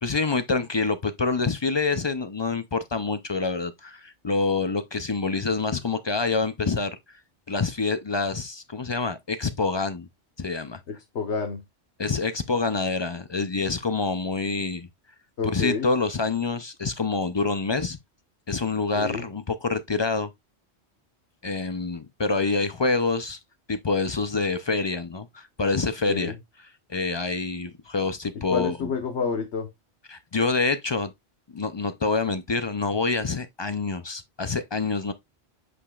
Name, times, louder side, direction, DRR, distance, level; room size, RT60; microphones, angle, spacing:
voice 1, 0.0-7.0 7.5-10.1 10.4-10.8 12.0-14.9 15.4-18.0 18.5-20.3 21.4-23.4 23.7-26.3 26.9-28.8 30.1-31.1 31.5-35.1, left 4 dB, 40° left, 0.4 m, -26 dB
voice 2, 10.9-11.6 15.4-15.9 19.0-19.2 26.1-26.4 28.3-29.7, left 5 dB, 90° left, 1.4 m, -29 dB
8.4 x 5.0 x 2.3 m
omnidirectional pair, 1.1 m